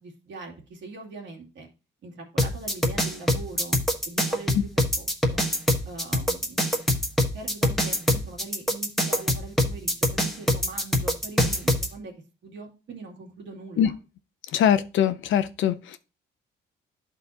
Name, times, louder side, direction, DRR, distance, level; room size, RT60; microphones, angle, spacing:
voice 1, 0.0-1.7 2.0-3.8 4.0-4.7 5.0-5.4 5.9-6.7 7.3-12.1 12.4-13.9, right 3 dB, 65° right, 2.3 m, -42 dB
sound 1, 2.4-11.9, equal, ahead, 1.4 m, -23 dB
voice 2, 14.5-16.0, left 9 dB, 75° left, 0.7 m, -22 dB
11.5 x 4.2 x 2.8 m
cardioid pair, 90°, 20 cm